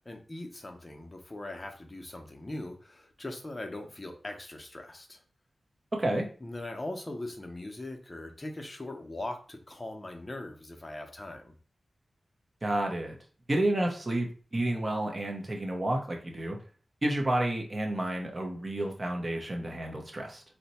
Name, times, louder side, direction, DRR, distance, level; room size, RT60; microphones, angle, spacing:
voice 1, 0.0-5.2 6.4-11.5, left 2 dB, 25° left, 3 dB, 0.6 m, -40 dB
voice 2, 5.9-6.3 12.6-13.2 13.5-16.6 17.0-20.4, right 1 dB, 35° right, 2 dB, 0.6 m, -30 dB
2.7 x 2.1 x 4.0 m, 0.39 s
wide cardioid pair, 120°, 0 cm